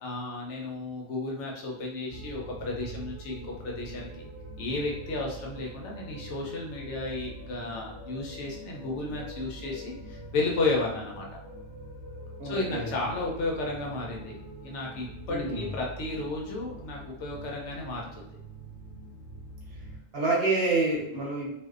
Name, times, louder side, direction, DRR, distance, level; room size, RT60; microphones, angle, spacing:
voice 1, 0.0-4.3 4.6-11.3 12.4-18.3, left 2 dB, 75° left, -1 dB, 0.9 m, -33 dB
sound 1, 2.1-20.0, right 2 dB, 55° left, 1.1 m, -44 dB
voice 2, 12.4-13.0 15.3-15.8 20.1-21.5, right 2 dB, 60° right, -4 dB, 0.9 m, -28 dB
2.5 x 2.1 x 2.3 m, 0.80 s
omnidirectional pair, 1.2 m